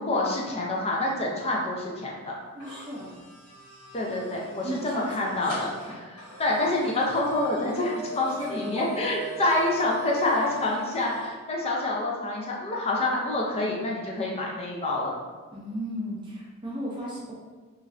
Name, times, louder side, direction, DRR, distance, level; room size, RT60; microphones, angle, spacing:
voice 1, 0.0-2.3 3.9-6.1 6.4-15.1, left 2 dB, 25° left, -2 dB, 0.5 m, -27 dB
sound 1, 2.6-11.3, left 1 dB, 50° left, 1.3 m, -40 dB
voice 2, 2.6-3.1 4.6-5.7 15.5-17.3, equal, 20° right, -6 dB, 0.5 m, -35 dB
3.1 x 2.6 x 2.4 m, 1.4 s
head